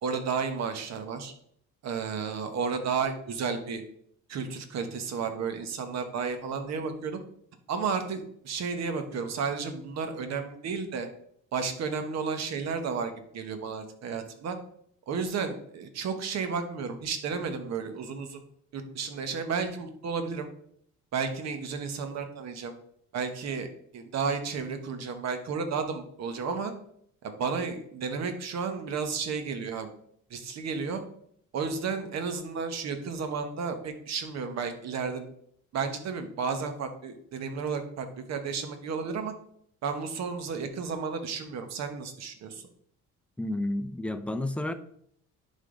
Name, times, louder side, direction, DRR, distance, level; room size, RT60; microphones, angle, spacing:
voice 1, 0.0-1.3 1.8-3.8 4.3-7.2 7.7-11.1 11.5-14.6 15.1-18.4 18.7-20.5 21.1-22.7 23.1-26.7 27.2-29.9 30.3-31.0 31.5-35.2 35.7-39.3 39.8-42.6, right 5 dB, 55° right, 7 dB, 1.2 m, -32 dB
voice 2, 43.4-44.7, left 1 dB, 5° left, 8 dB, 0.5 m, -31 dB
11.0 x 3.7 x 3.8 m, 0.67 s
cardioid pair, 125°, 31 cm